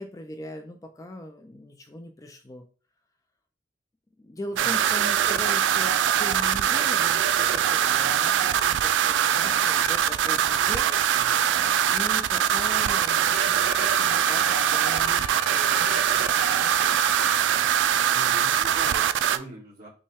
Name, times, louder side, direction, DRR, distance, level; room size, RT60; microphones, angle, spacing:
voice 1, 0.0-2.7 4.2-11.0 11.5-11.6 11.9-17.0, left 1 dB, 20° left, 5 dB, 0.4 m, -40 dB
sound 1, 4.5-19.4, right 9 dB, 80° right, 0.3 m, -22 dB
voice 2, 11.2-11.5 18.1-19.9, right 1 dB, 50° right, -5 dB, 1.8 m, -42 dB
Trumpet, 13.3-17.5, equal, ahead, 1.2 m, -36 dB
5.2 x 2.2 x 3.4 m, 0.38 s
head